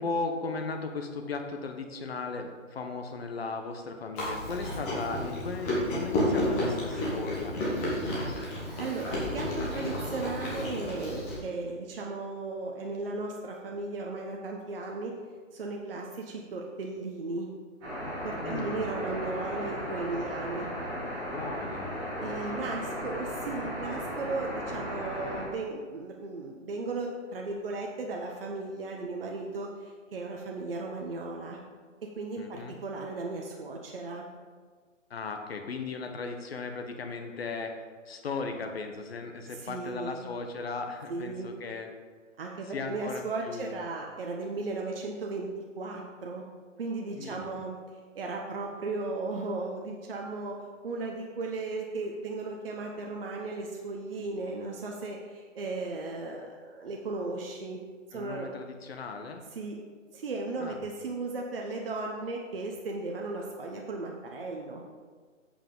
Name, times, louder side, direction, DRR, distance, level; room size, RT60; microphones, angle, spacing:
voice 1, 0.0-7.6 18.4-18.8 21.3-22.7 32.4-32.8 35.1-37.7 38.1-41.9 42.7-43.8 47.1-47.6 58.1-59.4 60.6-60.8, left 4 dB, 50° left, 5 dB, 1.1 m, -37 dB
Chewing mastication, 4.2-11.4, left 1 dB, 10° left, 1.0 m, -31 dB
voice 2, 8.7-15.1 15.5-17.5 18.2-20.7 22.2-31.6 32.0-34.3 39.5-40.3 41.1-41.5 42.4-46.4 46.8-47.8 48.1-50.6 50.8-57.8 58.1-58.5 59.5-59.8 60.1-64.8, right 3 dB, 45° right, 0 dB, 0.9 m, -36 dB
sound 1, 17.8-25.4, equal, 5° right, 0.7 m, -36 dB
8.1 x 7.0 x 3.8 m, 1.5 s
hypercardioid pair, 160°, 39 cm